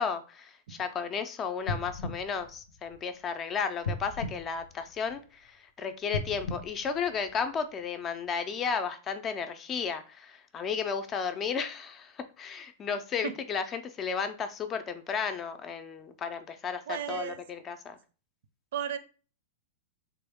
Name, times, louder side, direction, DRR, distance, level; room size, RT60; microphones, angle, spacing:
voice 1, 0.0-18.0, left 6 dB, 25° left, 9 dB, 0.4 m, -33 dB
sound 1, 1.6-3.3 3.8-5.4 6.0-7.7 8.3-8.4, left 2 dB, 85° left, 0.6 m, -38 dB
voice 2, 16.9-17.4 18.7-19.0, right 9 dB, 70° right, 11 dB, 0.5 m, -33 dB
3.6 x 2.2 x 3.5 m, 0.36 s
supercardioid pair, 145°, 0 cm